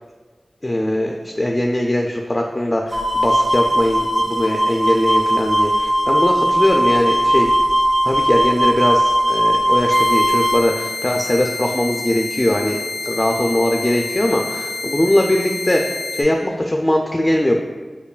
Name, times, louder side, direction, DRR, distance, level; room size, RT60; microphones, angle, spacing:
voice 1, 0.6-7.5 8.1-15.8 16.1-17.6, left 1 dB, 25° left, 1 dB, 0.3 m, -20 dB
sound 1, 2.9-10.6, equal, 40° right, 0.6 m, -18 dB
sound 2, 9.9-16.2, left 3 dB, 90° left, 0.4 m, -28 dB
5.2 x 2.2 x 2.3 m, 1.3 s
cardioid pair, 50°, 0 cm